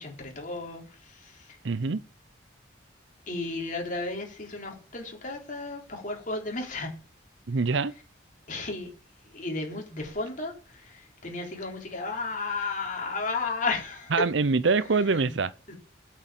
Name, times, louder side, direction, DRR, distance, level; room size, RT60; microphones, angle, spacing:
voice 1, 0.0-1.6 3.3-6.9 8.5-8.9 9.2-14.1 15.2-15.3 15.7-15.8, left 3 dB, 40° left, 3.8 m, -34 dB
voice 2, 1.6-2.0 7.5-7.9 14.1-15.5, right 4 dB, 65° right, 0.6 m, -24 dB
8.8 x 6.4 x 7.6 m
head